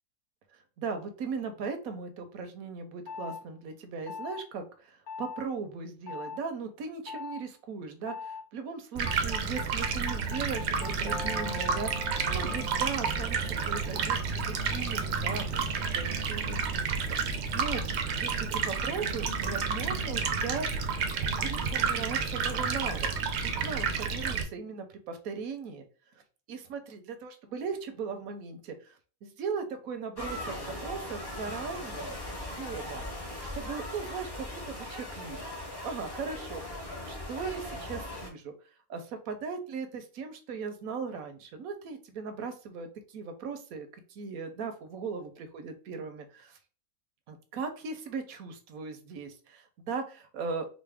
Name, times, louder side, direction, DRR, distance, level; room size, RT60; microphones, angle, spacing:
voice 1, 0.8-14.2 14.6-17.8 18.1-20.7 21.4-23.1 23.4-25.8 26.5-32.2 32.6-33.0 33.5-35.4 35.8-36.6 37.1-38.5 38.9-46.6 47.3-50.7, right 5 dB, 80° right, 7 dB, 1.1 m, -38 dB
sound 1, 3.1-3.4 4.1-4.4 5.1-5.4 6.1-6.4 7.1-7.4 8.1-8.4 9.1-14.1, left 5 dB, 90° left, 1.3 m, -41 dB
Stream, 9.0-24.4, right 5 dB, 60° right, 0.7 m, -30 dB
sound 2, 30.1-38.3, left 1 dB, 25° left, 0.6 m, -39 dB
4.1 x 2.0 x 3.4 m, 0.37 s
omnidirectional pair, 1.5 m